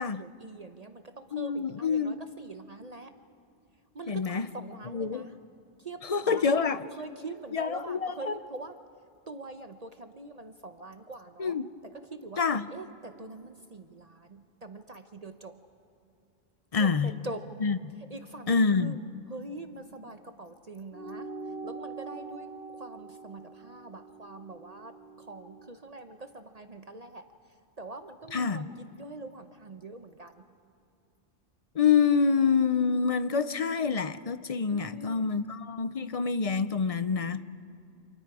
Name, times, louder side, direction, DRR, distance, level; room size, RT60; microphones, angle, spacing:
voice 1, 0.0-3.1 3.9-5.4 5.8-8.8 9.3-11.6 11.8-12.4 12.7-15.5 16.8-17.5 18.1-19.0 19.3-21.3 21.6-27.3 27.8-30.5 34.7-35.3, right 2 dB, 40° right, 0.9 m, -44 dB
voice 2, 1.3-2.2 4.1-4.5 4.9-5.3 6.0-6.9 7.5-8.4 11.4-11.7 12.4-12.7 16.7-17.1 17.6-17.8 18.5-18.9 28.3-28.7 31.7-37.4, left 5 dB, 40° left, 0.6 m, -27 dB
sound 1, 20.9-25.7, right 3 dB, 70° right, 1.8 m, -43 dB
29.5 x 27.5 x 4.8 m
omnidirectional pair, 1.1 m